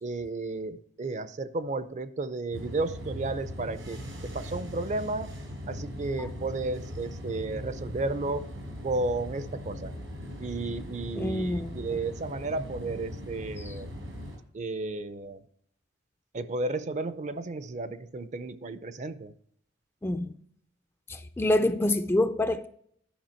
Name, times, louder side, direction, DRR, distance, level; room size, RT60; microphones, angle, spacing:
voice 1, 0.0-5.3 5.7-8.5 8.8-9.9 10.4-13.9 14.5-15.4 16.3-19.3, right 3 dB, 40° right, 0.5 m, -33 dB
sound 1, 2.5-14.4, equal, 85° right, 3.9 m, -39 dB
voice 2, 11.1-11.7 13.6-13.7 20.0-20.3 21.1-22.7, left 1 dB, 10° left, 0.4 m, -26 dB
10.5 x 5.6 x 4.4 m
head